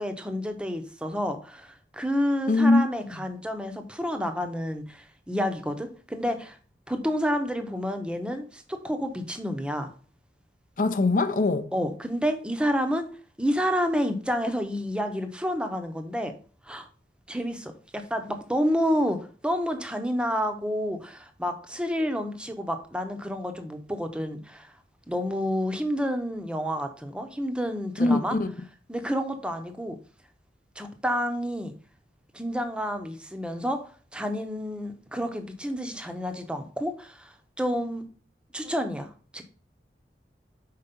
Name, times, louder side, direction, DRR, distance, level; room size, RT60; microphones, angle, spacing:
voice 1, 0.0-6.6 6.9-9.9 11.7-13.1 13.4-16.3 16.6-16.9 17.3-19.2 19.4-24.7 25.1-28.4 28.9-30.0 30.8-31.7 32.3-33.8 34.1-38.0 38.5-39.4, equal, 5° right, 0.7 m, -29 dB
voice 2, 2.5-2.9 10.8-11.7 28.0-28.5, left 2 dB, 50° left, 0.6 m, -22 dB
5.7 x 4.6 x 5.2 m
head